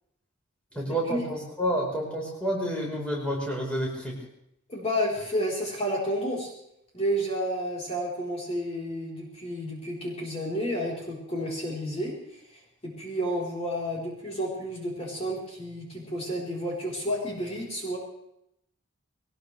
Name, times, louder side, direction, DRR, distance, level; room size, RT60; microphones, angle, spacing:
voice 1, 0.7-4.1, equal, 5° left, -3 dB, 4.5 m, -29 dB
voice 2, 4.7-6.5 6.9-12.2 12.8-18.0, equal, 30° left, -5 dB, 4.2 m, -31 dB
22.0 x 19.5 x 3.4 m, 0.80 s
head